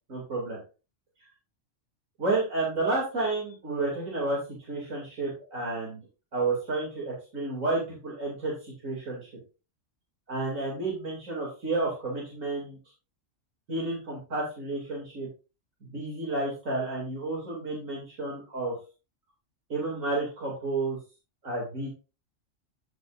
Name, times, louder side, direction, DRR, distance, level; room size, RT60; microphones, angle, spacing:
voice 1, 0.1-0.6 2.2-4.4 4.7-6.0 6.3-9.2 10.3-12.8 13.7-15.3 15.8-18.7 19.7-21.0 21.4-21.9, right 2 dB, 85° right, -4 dB, 3.0 m, -31 dB
14.0 x 5.5 x 2.5 m, 0.32 s
omnidirectional pair, 1.3 m